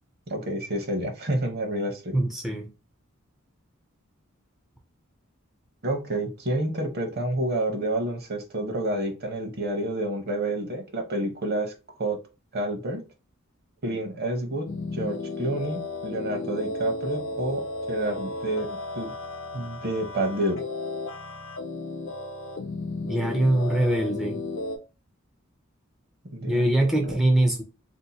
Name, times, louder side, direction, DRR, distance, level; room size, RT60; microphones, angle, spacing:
voice 1, 0.3-2.2 5.8-11.7 12.0-12.2 12.5-13.0 13.8-14.7 14.9-17.6 17.9-19.1 19.5-20.6 26.3-27.1, right 1 dB, 50° right, 0.9 m, -29 dB
voice 2, 2.1-2.7 23.1-24.4 26.5-27.6, right 1 dB, ahead, 0.4 m, -23 dB
sound 1, 14.7-24.8, left 3 dB, 65° left, 0.6 m, -34 dB
2.8 x 2.1 x 4.0 m
head